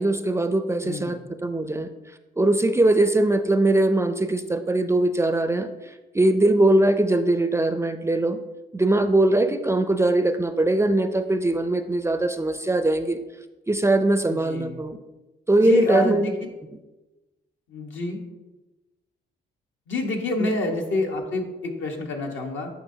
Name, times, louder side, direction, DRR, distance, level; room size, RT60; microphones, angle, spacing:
voice 1, 0.0-1.9 2.4-8.4 8.7-13.2 13.7-15.0 15.5-16.3 20.4-20.5, right 2 dB, 15° right, 9 dB, 0.4 m, -21 dB
voice 2, 0.8-1.2 14.3-14.8 15.6-16.3 17.7-18.2 19.9-22.7, left 2 dB, 75° left, 1 dB, 1.3 m, -28 dB
10.0 x 5.5 x 2.8 m, 1.1 s
cardioid pair, 90°, 20 cm